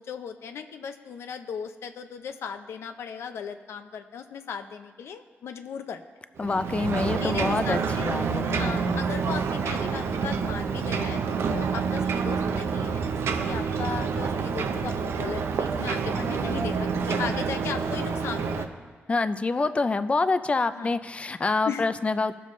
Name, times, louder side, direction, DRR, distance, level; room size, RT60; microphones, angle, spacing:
voice 1, 0.0-6.0 6.9-8.1 8.6-18.7 20.7-21.0 21.7-21.8, left 7 dB, 90° left, 7 dB, 0.5 m, -37 dB
voice 2, 6.4-9.0 19.1-22.4, left 3 dB, 30° left, 12 dB, 0.4 m, -26 dB
Ocean, 6.4-18.7, right 5 dB, 80° right, 0.6 m, -28 dB
17.0 x 6.8 x 3.2 m, 1.5 s
wide cardioid pair, 120°, 4 cm